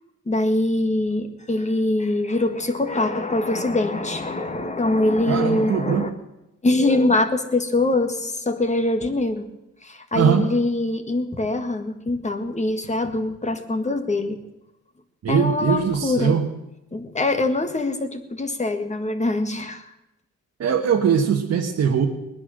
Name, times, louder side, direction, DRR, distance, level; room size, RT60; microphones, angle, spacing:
voice 1, 0.3-6.1 6.6-9.5 9.8-14.4 15.3-16.4 16.9-19.9, left 2 dB, 25° left, 6 dB, 1.8 m, -23 dB
voice 2, 5.3-6.1 10.1-10.5 15.2-16.5 20.6-22.1, right 7 dB, 55° right, 0 dB, 1.4 m, -21 dB
19.5 x 10.5 x 6.5 m, 0.91 s
cardioid pair, 90°, 30 cm